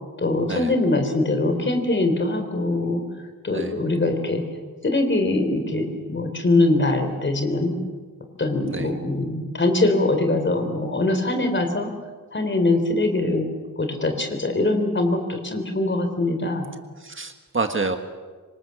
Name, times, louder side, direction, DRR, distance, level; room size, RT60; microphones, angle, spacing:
voice 1, 0.2-3.0 3.4-4.4 4.8-7.8 8.4-11.9 12.3-13.4 13.8-16.7, left 2 dB, 35° left, 5 dB, 3.9 m, -22 dB
voice 2, 17.0-18.0, right 3 dB, 35° right, 6 dB, 1.6 m, -27 dB
26.5 x 25.0 x 7.2 m, 1.4 s
wide cardioid pair, 160°, 34 cm